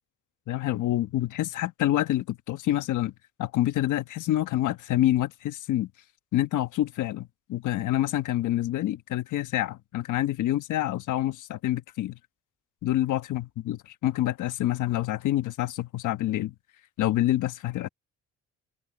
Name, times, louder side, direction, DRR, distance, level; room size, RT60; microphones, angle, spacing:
voice 1, 0.5-3.1 3.4-5.9 6.3-12.2 12.8-16.5 17.0-17.9, left 14 dB, 80° left, 1.3 m, -27 dB
cardioid pair, 90°, 30 cm